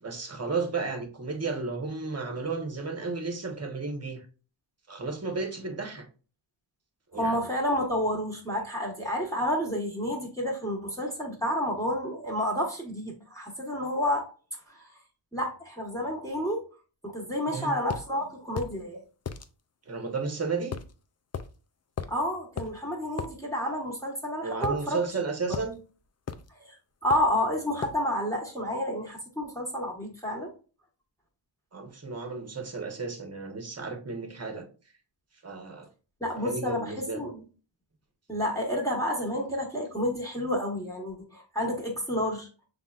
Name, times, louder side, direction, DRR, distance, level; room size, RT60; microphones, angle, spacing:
voice 1, 0.0-4.2 4.9-6.1 7.1-7.5 17.5-17.7 19.9-20.7 24.4-25.8 31.7-34.7 35.4-35.9 36.4-37.2, right 4 dB, 30° right, 1.1 m, -33 dB
voice 2, 7.1-14.3 14.7-14.9 15.3-16.7 17.0-19.0 22.1-25.0 26.6-26.7 27.0-30.5 36.2-37.4 38.3-42.5, equal, 5° left, 1.3 m, -30 dB
sound 1, 17.9-18.1 18.6-18.8 19.3-19.5 20.7-20.9 21.3-21.5 22.0-22.2 22.6-22.7 23.2-23.3 24.6-25.2 25.5-25.7 26.3-26.5 27.1-27.4 27.8-28.0, left 6 dB, 35° left, 0.4 m, -36 dB
5.5 x 3.5 x 2.4 m
wide cardioid pair, 95°, 48 cm